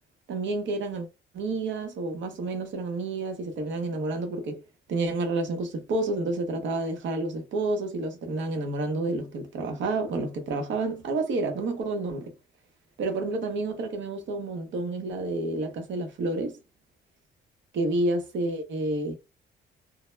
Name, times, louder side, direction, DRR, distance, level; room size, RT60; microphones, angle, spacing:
voice 1, 0.3-1.1 1.3-4.6 4.9-12.3 13.0-16.6 17.7-19.1, right 2 dB, 70° right, 0.8 m, -29 dB
2.1 x 2.1 x 3.1 m
cardioid pair, 90°, 20 cm